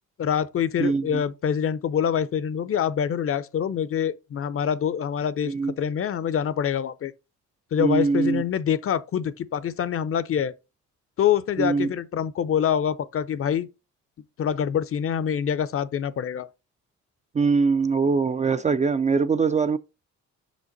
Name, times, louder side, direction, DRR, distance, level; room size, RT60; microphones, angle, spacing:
voice 1, 0.2-7.1 7.7-10.5 11.2-13.7 14.4-16.5, left 8 dB, 45° left, 0.6 m, -25 dB
voice 2, 0.8-1.2 5.4-5.7 7.8-8.4 11.6-11.9 17.3-19.8, right 4 dB, 25° right, 0.3 m, -22 dB
5.7 x 5.1 x 3.9 m
cardioid pair, 90°, 30 cm